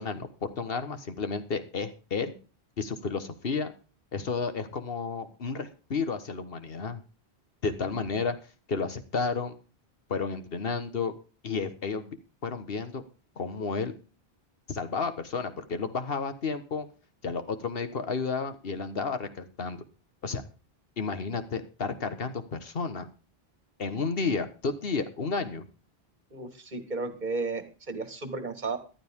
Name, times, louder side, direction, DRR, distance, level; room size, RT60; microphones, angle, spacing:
voice 1, 0.0-2.3 2.8-3.7 4.1-7.0 7.6-8.4 8.7-9.6 10.1-11.1 11.4-12.2 12.4-13.0 13.4-13.9 14.7-16.9 17.2-19.8 20.2-20.4 21.0-23.1 23.8-25.6, left 4 dB, 65° left, 10 dB, 1.6 m, -32 dB
voice 2, 26.3-28.8, right 3 dB, 45° right, 9 dB, 1.8 m, -33 dB
14.5 x 12.0 x 3.7 m, 0.35 s
omnidirectional pair, 1.1 m